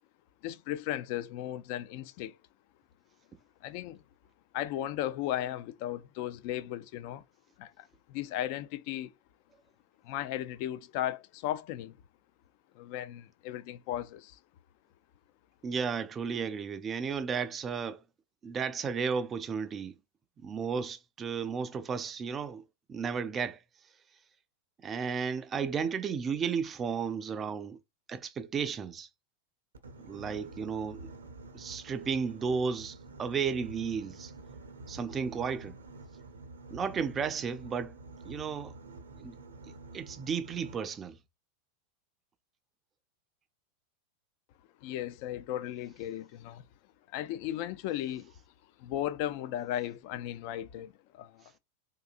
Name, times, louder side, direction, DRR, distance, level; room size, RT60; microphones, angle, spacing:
voice 1, 0.4-2.3 3.6-4.0 4.5-7.2 7.6-9.1 10.0-12.0 12.7-14.4 44.8-46.6 47.1-48.3 48.8-51.4, left 12 dB, 45° left, 0.4 m, -36 dB
voice 2, 15.6-18.0 18.4-19.9 20.4-22.6 22.9-23.6 24.8-27.8 28.1-29.1 30.0-31.1 31.5-34.3 34.9-35.7 36.7-38.0 38.3-38.7 39.2-39.4 39.9-41.2, right 6 dB, 20° right, 0.4 m, -33 dB
Boat Water vehicle, 29.7-40.7, right 3 dB, 70° right, 0.6 m, -48 dB
3.8 x 2.6 x 2.5 m
figure-of-eight pair, 90°, 0 cm